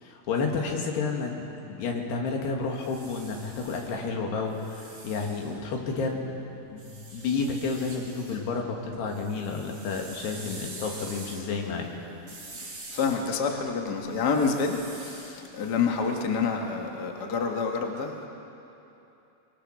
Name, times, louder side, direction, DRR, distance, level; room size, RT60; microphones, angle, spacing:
voice 1, 0.0-6.2 6.5-11.9, left 4 dB, 75° left, 1 dB, 4.0 m, -31 dB
sound 1, 2.6-6.1 6.8-8.4 8.8-16.7, right 2 dB, 35° right, 5.8 m, -46 dB
voice 2, 12.6-18.3, left 5 dB, 60° left, 2 dB, 1.0 m, -28 dB
23.0 x 22.0 x 6.5 m, 2.9 s
omnidirectional pair, 4.9 m